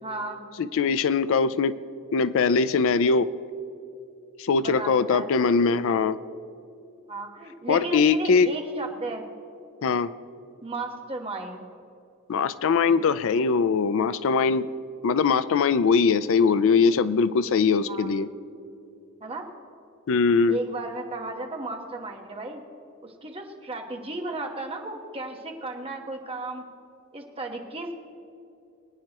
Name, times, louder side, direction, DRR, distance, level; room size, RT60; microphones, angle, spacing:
voice 1, 0.0-0.4 4.6-5.3 7.1-9.2 10.6-11.6 17.9-18.1 19.2-19.5 20.5-22.6 23.0-26.6 27.1-27.9, right 2 dB, 25° right, 2 dB, 1.2 m, -34 dB
voice 2, 0.6-1.7 2.1-3.3 4.4-6.2 7.7-8.5 9.8-10.1 12.3-14.7 15.0-18.3 20.1-20.6, left 5 dB, 65° left, 15 dB, 0.4 m, -21 dB
22.5 x 9.4 x 3.0 m, 2.6 s
head